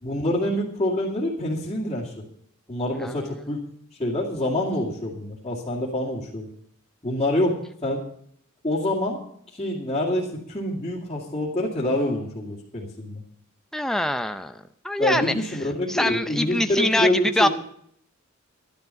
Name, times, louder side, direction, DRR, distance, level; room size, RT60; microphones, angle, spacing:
voice 1, 0.0-2.1 2.7-3.6 4.0-6.5 7.0-7.6 7.8-8.0 8.6-9.2 9.5-13.2 15.0-17.5, left 1 dB, 25° left, -9 dB, 2.4 m, -26 dB
voice 2, 3.0-3.4 13.7-15.3 15.9-17.5, left 1 dB, ahead, 8 dB, 0.5 m, -24 dB
12.0 x 10.5 x 5.7 m, 0.69 s
head